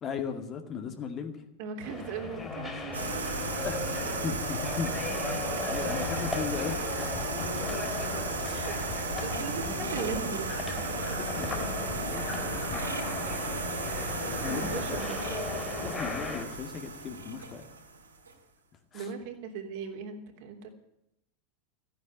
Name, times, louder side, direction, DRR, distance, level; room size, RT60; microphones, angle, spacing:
voice 1, 0.0-1.5 3.6-4.9 5.2-7.0 8.4-8.6 11.2-13.7 14.0-15.0 15.3-15.4 15.8-17.7 18.9-19.1, left 6 dB, 35° left, 6 dB, 2.2 m, -38 dB
voice 2, 1.6-3.5 5.5-5.6 6.0-6.1 8.5-8.7 9.2-11.7 14.5-15.2 18.9-20.7, right 6 dB, 55° right, 3 dB, 3.3 m, -39 dB
sound 1, 1.8-16.5, left 3 dB, 15° left, 4.3 m, -36 dB
sound 2, 2.9-18.3, right 3 dB, 85° right, 3.7 m, -35 dB
15.0 x 9.6 x 9.5 m, 0.82 s
figure-of-eight pair, 90°, 0 cm